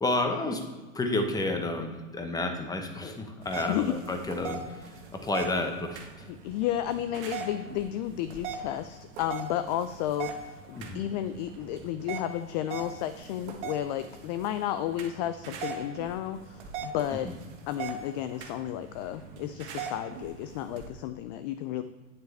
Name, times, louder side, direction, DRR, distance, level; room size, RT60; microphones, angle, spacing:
voice 1, 0.0-0.6 0.9-4.9 5.2-6.1 10.7-11.0 17.2-17.3, left 2 dB, 10° left, 5 dB, 1.1 m, -30 dB
sound 1, 3.4-20.9, right 5 dB, 55° right, 1.7 m, -41 dB
voice 2, 6.3-17.3 17.7-21.8, left 11 dB, 35° left, 12 dB, 0.4 m, -32 dB
9.3 x 7.6 x 3.4 m, 1.2 s
hypercardioid pair, 105°, 40 cm